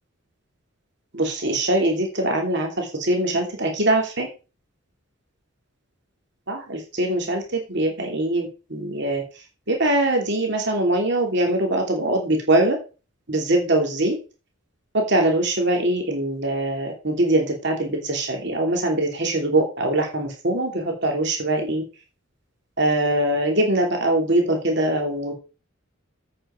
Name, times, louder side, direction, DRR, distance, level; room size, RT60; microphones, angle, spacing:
voice 1, 1.1-4.3 6.5-9.2 9.7-12.8 13.3-14.1 14.9-21.8 22.8-25.3, right 1 dB, 55° right, 2 dB, 2.9 m, -22 dB
8.7 x 7.7 x 5.0 m, 0.33 s
head